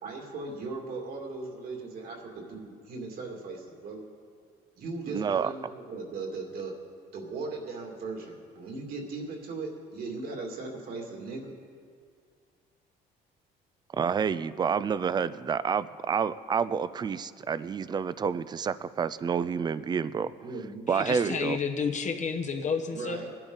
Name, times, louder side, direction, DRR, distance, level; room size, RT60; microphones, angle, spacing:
voice 1, 0.0-4.0 4.8-6.7 7.1-11.5 20.3-20.9 21.2-21.4 22.9-23.3, right 3 dB, 65° right, 0 dB, 2.5 m, -38 dB
voice 2, 5.1-5.5 13.9-20.3 20.9-21.6, right 6 dB, 25° right, 16 dB, 0.4 m, -29 dB
voice 3, 20.9-23.2, left 5 dB, 45° left, 5 dB, 1.0 m, -31 dB
20.0 x 12.0 x 4.0 m, 2.2 s
cardioid pair, 110°, 17 cm